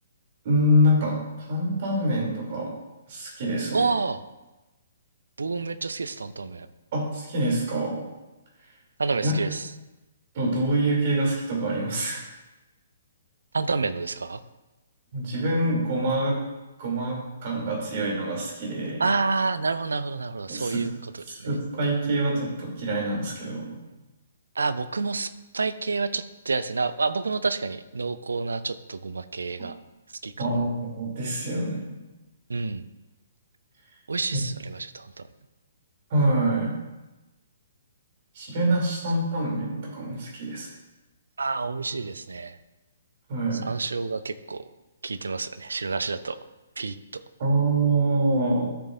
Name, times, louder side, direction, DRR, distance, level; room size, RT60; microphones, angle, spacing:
voice 1, 0.4-2.7 3.1-3.9 6.9-8.0 9.2-9.3 10.3-12.2 15.1-16.4 16.8-19.1 20.5-20.8 21.3-23.7 30.4-31.9 36.1-36.7 38.3-40.7 43.3-43.7 47.4-48.7, right 1 dB, 45° right, -2 dB, 3.3 m, -25 dB
voice 2, 3.7-4.2 5.4-6.7 9.0-9.7 13.5-14.4 19.0-21.6 24.6-29.8 30.2-30.6 32.5-32.8 34.1-35.1 41.4-42.6 43.5-44.6 45.0-46.4 46.8-47.0, right 4 dB, 70° right, 13 dB, 0.5 m, -29 dB
12.5 x 6.9 x 2.7 m, 1.1 s
figure-of-eight pair, 125°, 0 cm